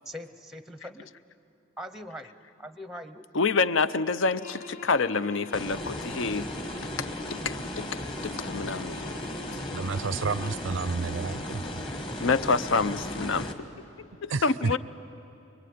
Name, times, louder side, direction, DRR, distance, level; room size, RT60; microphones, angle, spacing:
voice 1, 0.1-1.1 1.8-3.3 12.1-12.2 14.6-14.8, equal, ahead, 10 dB, 0.7 m, -41 dB
voice 2, 3.3-6.5 7.0-9.0 12.2-13.5 14.0-14.8, left 4 dB, 70° left, 14 dB, 0.6 m, -27 dB
sound 1, 4.3-10.7, left 3 dB, 40° left, 1.1 m, -46 dB
sound 2, 5.5-13.5, left 1 dB, 25° left, 1.4 m, -36 dB
voice 3, 9.7-11.6 14.3-14.8, right 4 dB, 70° right, 16 dB, 0.5 m, -30 dB
25.5 x 23.5 x 9.5 m, 2.7 s
head